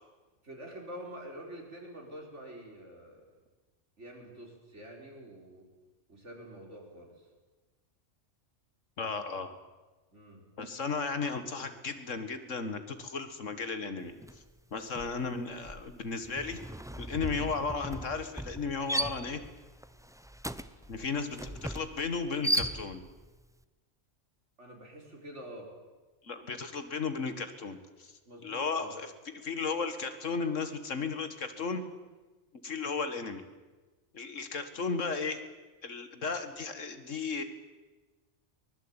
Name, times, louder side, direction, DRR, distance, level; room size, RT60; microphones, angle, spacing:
voice 1, 0.4-3.2 4.0-5.6 6.1-7.3 10.1-10.4 21.2-21.6 24.6-25.7 28.3-28.9, right 1 dB, 70° right, 1 dB, 5.5 m, -47 dB
voice 2, 9.0-9.6 10.6-14.1 14.7-16.6 17.0-19.4 20.9-23.0 26.2-28.1 28.4-29.1 29.4-31.8 32.6-33.4 34.1-35.4 35.8-37.4, left 4 dB, 80° left, 9 dB, 2.2 m, -35 dB
sound 1, 14.2-14.5 14.8-23.2, right 1 dB, 5° right, 0.6 m, -37 dB
24.0 x 20.5 x 9.0 m, 1.2 s
omnidirectional pair, 1.3 m